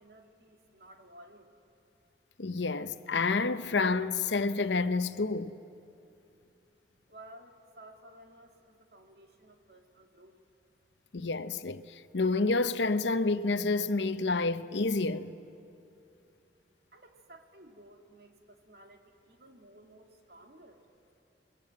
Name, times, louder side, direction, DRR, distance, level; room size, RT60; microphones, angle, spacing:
voice 1, 0.0-1.6 7.1-10.4 16.9-20.9, right 1 dB, 60° right, 2.5 m, -55 dB
voice 2, 2.4-5.5 11.1-15.3, left 3 dB, 80° left, 0.8 m, -29 dB
29.0 x 22.0 x 8.8 m
head